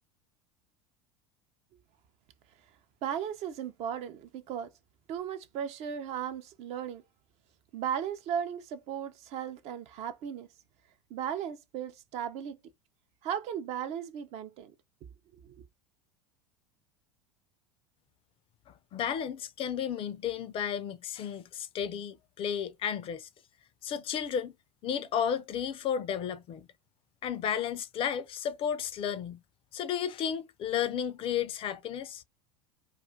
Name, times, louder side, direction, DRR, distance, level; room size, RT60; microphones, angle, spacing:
voice 1, 3.0-4.7 5.1-7.0 7.7-10.5 11.1-12.6 13.2-14.7 15.3-15.6, right 8 dB, 45° right, 0.5 m, -36 dB
voice 2, 18.9-23.3 23.8-24.5 24.8-26.7 27.2-29.4 29.7-32.2, left 8 dB, 35° left, 0.4 m, -33 dB
2.4 x 2.4 x 3.4 m
figure-of-eight pair, 75°, 15 cm